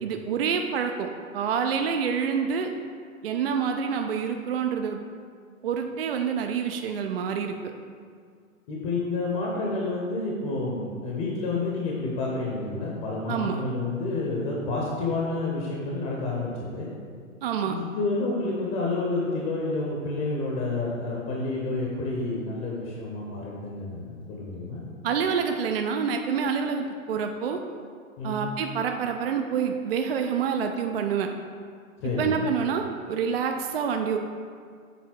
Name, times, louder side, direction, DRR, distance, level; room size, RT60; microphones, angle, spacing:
voice 1, 0.0-1.1 1.3-2.7 3.2-5.0 5.6-7.6 13.3-13.6 17.4-17.8 25.0-27.6 28.2-31.3 32.0-34.2, right 6 dB, 45° right, 4 dB, 0.4 m, -27 dB
voice 2, 8.7-16.9 17.6-24.9 28.2-28.4 32.0-32.4, left 3 dB, 25° left, -3 dB, 0.8 m, -29 dB
7.2 x 3.6 x 4.4 m, 2.1 s
figure-of-eight pair, 120°, 41 cm